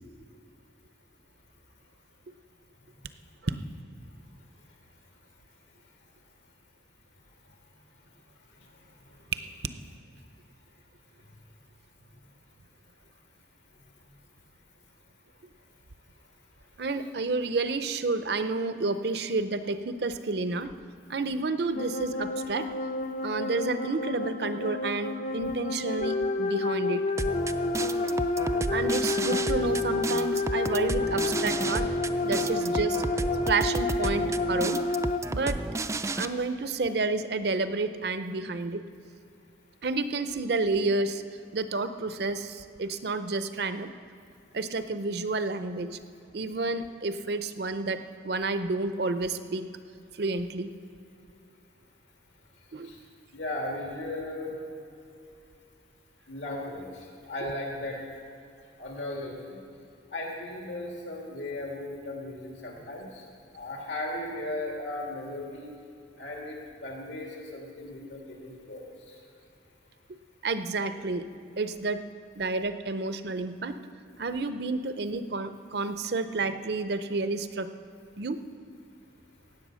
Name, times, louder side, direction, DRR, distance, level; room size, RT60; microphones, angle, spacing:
voice 1, 16.8-20.7 21.1-22.7 23.2-27.0 28.7-31.9 32.2-33.0 33.5-34.8 35.3-35.6 36.2-38.8 39.8-41.2 41.5-43.9 44.5-46.0 46.3-49.7 50.2-50.7 52.7-52.9 70.4-71.2 71.6-72.0 72.4-73.8 74.2-77.7 78.2-78.4, right 3 dB, 60° right, 11 dB, 0.6 m, -30 dB
sound 1, 21.8-35.2, left 3 dB, 40° left, 0.6 m, -29 dB
sound 2, 27.2-36.3, right 2 dB, 15° right, 0.3 m, -32 dB
voice 2, 53.3-54.5 56.3-58.0 58.8-59.6 60.1-63.2 63.5-65.7 66.2-69.1, left 1 dB, 80° left, -1 dB, 2.7 m, -36 dB
17.0 x 7.8 x 6.3 m, 2.6 s
head